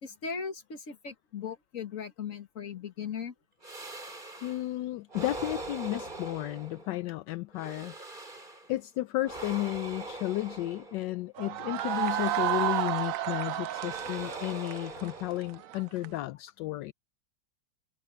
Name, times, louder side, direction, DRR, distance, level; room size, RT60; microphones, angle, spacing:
voice 1, 0.0-3.3, left 6 dB, 45° left, 2.1 m, -38 dB
sound 1, 3.6-4.7 5.1-7.1 7.5-8.8 9.2-11.2 11.8-13.2 13.7-15.8, right 2 dB, 25° right, 3.5 m, -43 dB
voice 2, 4.4-7.9 8.7-16.9, left 16 dB, 80° left, 1.2 m, -33 dB
sound 2, 11.4-16.1, right 13 dB, 70° right, 0.8 m, -32 dB
omnidirectional pair, 2.0 m